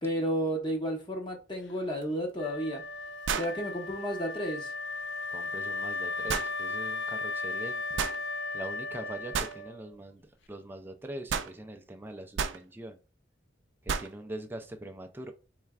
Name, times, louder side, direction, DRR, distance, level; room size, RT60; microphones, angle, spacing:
voice 1, 0.0-2.8 3.4-4.7, equal, 25° left, 0.9 m, -32 dB
sound 1, 2.0-2.1 3.3-3.6 6.3-6.5 8.0-8.2 9.3-9.6 11.3-11.5 12.4-12.6 13.9-14.1, right 6 dB, 80° right, 0.4 m, -31 dB
Wind instrument woodwind instrument, 2.4-9.9, left 3 dB, 70° left, 0.5 m, -36 dB
voice 2, 5.3-8.1 8.5-10.2 10.5-13.0 13.8-15.3, right 1 dB, 10° right, 0.4 m, -42 dB
4.4 x 3.2 x 2.3 m
head